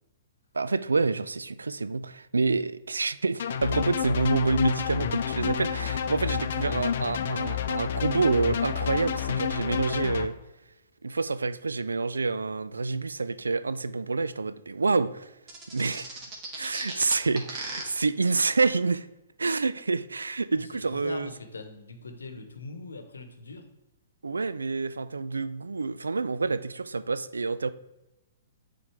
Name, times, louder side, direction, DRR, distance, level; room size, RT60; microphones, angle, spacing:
voice 1, 0.5-10.4 11.0-15.3 15.7-16.1 16.6-19.1 19.4-21.3 24.2-27.7, right 4 dB, 80° right, 0.3 m, -28 dB
sound 1, 3.4-10.3, left 8 dB, 55° left, 0.5 m, -29 dB
sound 2, 15.5-17.8, right 3 dB, 30° right, 1.8 m, -37 dB
voice 2, 16.7-17.1 20.5-23.7, left 3 dB, 75° left, 1.0 m, -42 dB
9.9 x 3.9 x 3.4 m
figure-of-eight pair, 115°, 0 cm